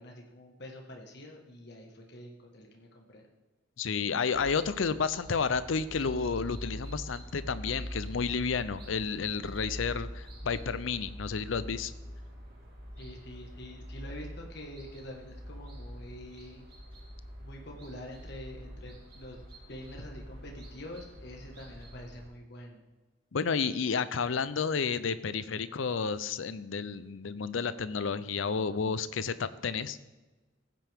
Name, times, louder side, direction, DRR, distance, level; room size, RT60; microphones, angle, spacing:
voice 1, 0.0-3.3 13.0-16.6 17.4-19.4 19.7-22.8, left 1 dB, 55° left, 1 dB, 1.6 m, -46 dB
voice 2, 3.8-11.9 23.3-30.0, left 5 dB, 80° left, 14 dB, 0.6 m, -31 dB
sound 1, 4.3-22.2, equal, 50° right, 2.9 m, -44 dB
15.5 x 9.2 x 3.6 m, 1.2 s
head